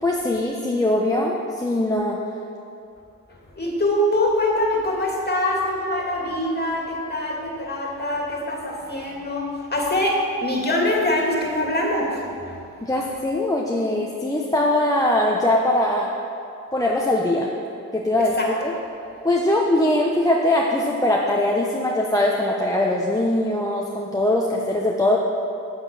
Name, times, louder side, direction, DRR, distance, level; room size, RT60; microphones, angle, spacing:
voice 1, 0.0-2.2 12.8-16.1 16.7-17.5 17.9-18.7 19.2-25.2, left 1 dB, 10° left, -2 dB, 1.0 m, -21 dB
voice 2, 3.6-10.2 10.4-12.1 18.4-18.5, left 1 dB, 30° left, -2 dB, 2.5 m, -23 dB
8.0 x 7.8 x 6.2 m, 2.6 s
cardioid pair, 60°, 33 cm